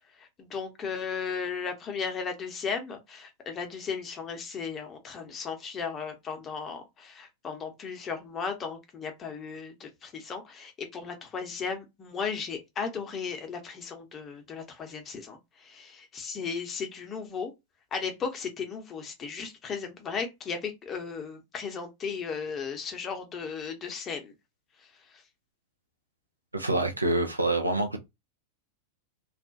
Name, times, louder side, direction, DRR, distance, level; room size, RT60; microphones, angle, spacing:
voice 1, 0.0-17.5 17.9-24.3 24.8-25.2, left 5 dB, 25° left, 0.7 m, -36 dB
voice 2, 26.5-28.0, right 2 dB, 85° right, 0.5 m, -26 dB
2.3 x 2.1 x 2.6 m
figure-of-eight pair, 90°, 0 cm